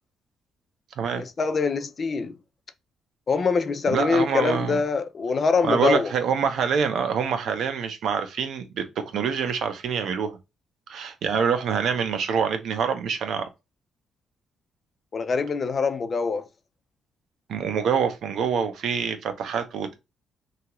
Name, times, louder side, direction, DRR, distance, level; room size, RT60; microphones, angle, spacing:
voice 1, 1.1-2.3 3.3-6.1 15.1-16.5, left 5 dB, 30° left, 0.3 m, -24 dB
voice 2, 3.9-4.8 5.6-10.4 10.9-13.5 17.5-19.9, right 6 dB, 65° right, 0.6 m, -26 dB
2.8 x 2.3 x 2.9 m
cardioid pair, 160°, 0 cm